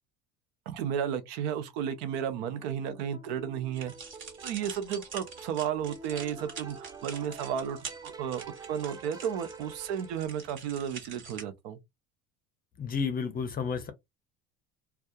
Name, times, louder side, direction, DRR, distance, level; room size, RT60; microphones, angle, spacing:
voice 1, 0.7-3.9 4.4-11.8, right 8 dB, 85° right, 0.7 m, -33 dB
sound 1, 1.9-10.8, right 4 dB, 15° right, 0.4 m, -48 dB
sound 2, 3.7-11.4, right 5 dB, 40° right, 1.3 m, -45 dB
voice 2, 12.8-13.9, left 6 dB, 30° left, 0.6 m, -31 dB
2.3 x 2.2 x 2.7 m
supercardioid pair, 100°, 30 cm